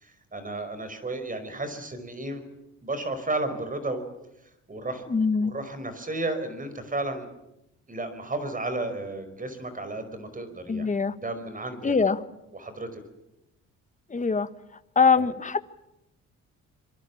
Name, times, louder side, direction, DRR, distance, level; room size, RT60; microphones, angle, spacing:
voice 1, 0.0-2.4 2.8-4.0 4.7-5.0 5.4-7.3 7.9-10.9 11.1-12.1 12.5-13.0 15.1-15.3, right 2 dB, 25° right, 10 dB, 5.1 m, -33 dB
voice 2, 5.1-5.5 10.7-11.1 11.8-12.2 14.1-14.5 14.9-15.6, left 5 dB, 25° left, 12 dB, 1.5 m, -23 dB
25.5 x 24.0 x 7.3 m, 0.88 s
cardioid pair, 90°, 30 cm